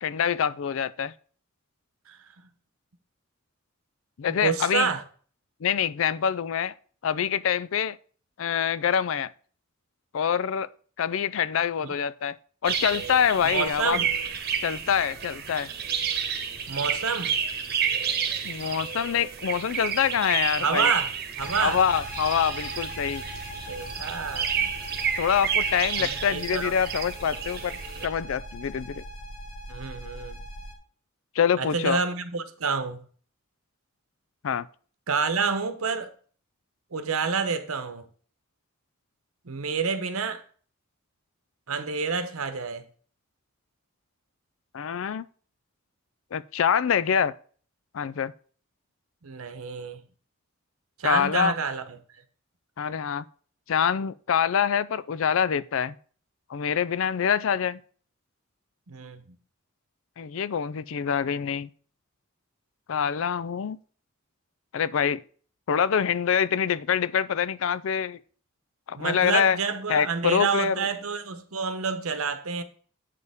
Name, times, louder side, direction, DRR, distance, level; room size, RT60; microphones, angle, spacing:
voice 1, 0.0-1.1 4.2-4.9 5.6-6.7 7.0-8.0 8.4-9.3 10.1-10.7 11.0-12.4 12.6-14.0 14.6-15.7 18.4-20.9 21.6-23.2 25.2-29.0 31.4-32.0 34.4-34.7 44.7-45.3 46.3-47.3 47.9-48.3 51.0-51.5 52.8-53.2 53.7-56.0 56.5-57.8 60.2-61.7 62.9-63.8 64.7-65.2 65.7-68.2 68.9-69.6 69.9-70.9, left 7 dB, 65° left, 0.4 m, -25 dB
voice 2, 4.3-5.0 11.8-11.9 13.4-14.1 16.7-17.3 20.6-21.1 21.4-21.8 23.7-24.7 26.0-26.7 29.7-30.4 31.6-33.0 35.1-36.1 36.9-38.1 39.4-40.4 41.7-42.9 49.2-50.0 51.0-52.0 58.9-59.4 69.0-72.6, right 5 dB, 85° right, 0.9 m, -28 dB
sound 1, 12.6-28.1, right 7 dB, 50° right, 1.1 m, -30 dB
sound 2, 21.4-30.8, equal, 90° left, 1.7 m, -40 dB
8.3 x 6.5 x 3.5 m
head